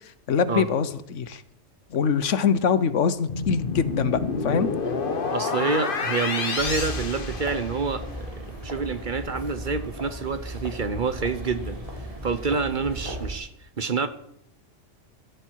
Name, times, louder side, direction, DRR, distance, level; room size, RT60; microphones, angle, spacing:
voice 1, 0.3-1.4 1.9-4.7, left 6 dB, 80° left, 14 dB, 1.2 m, -23 dB
sound 1, 3.3-8.0, left 4 dB, 45° left, 1.3 m, -28 dB
voice 2, 5.3-11.8 12.2-13.5 13.8-14.1, right 4 dB, 45° right, 12 dB, 1.0 m, -28 dB
sound 2, 6.6-13.3, right 1 dB, 30° right, 3.7 m, -36 dB
17.0 x 13.0 x 4.6 m, 0.73 s
omnidirectional pair, 1.3 m